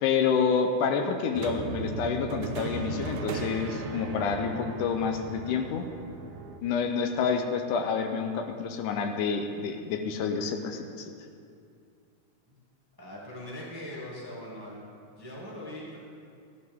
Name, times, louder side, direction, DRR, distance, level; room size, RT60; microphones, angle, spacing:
voice 1, 0.0-5.9 6.6-11.1, left 6 dB, 80° left, 5 dB, 2.2 m, -28 dB
sound 1, 1.4-6.6, right 4 dB, 80° right, 2.2 m, -36 dB
voice 2, 13.0-14.8 15.2-16.0, left 1 dB, 10° right, -6 dB, 1.4 m, -41 dB
14.5 x 11.0 x 3.6 m, 2.4 s
omnidirectional pair, 3.6 m